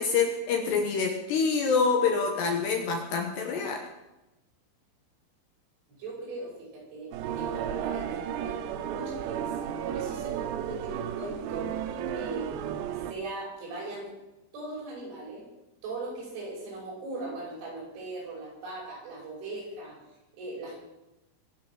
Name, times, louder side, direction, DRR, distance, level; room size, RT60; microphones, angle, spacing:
voice 1, 0.0-3.9, left 5 dB, 70° left, 3 dB, 2.9 m, -26 dB
voice 2, 5.9-12.5 13.1-14.1 14.5-15.4 15.8-20.0 20.4-20.8, right 2 dB, 65° right, -3 dB, 8.3 m, -39 dB
sound 1, 7.1-13.1, right 9 dB, 90° right, 3.7 m, -33 dB
23.5 x 8.5 x 6.3 m, 0.98 s
omnidirectional pair, 5.9 m